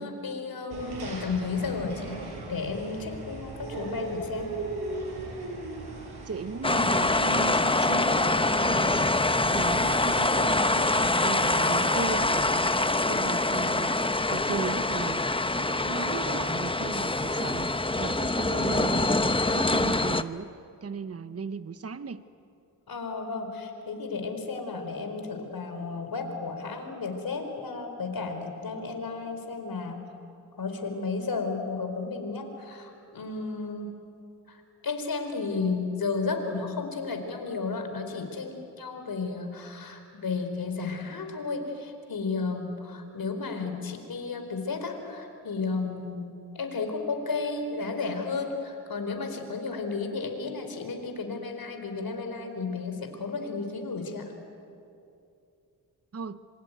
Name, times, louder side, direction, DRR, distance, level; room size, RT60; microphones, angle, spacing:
voice 1, 0.0-2.2 2.5-4.5 22.9-30.0 30.6-34.0 34.5-46.3 46.5-54.3, left 4 dB, 65° left, 5 dB, 4.7 m, -33 dB
sound 1, 0.7-12.6, right 3 dB, 90° right, 6.0 m, -39 dB
voice 2, 6.3-9.2 9.5-14.0 14.3-15.2 15.5-20.5 20.8-22.2 56.1-56.4, right 5 dB, 40° right, 12 dB, 1.0 m, -36 dB
sound 2, 6.6-20.2, left 2 dB, 15° left, 0.9 m, -25 dB
26.5 x 24.0 x 9.3 m, 2.6 s
cardioid pair, 55°, 38 cm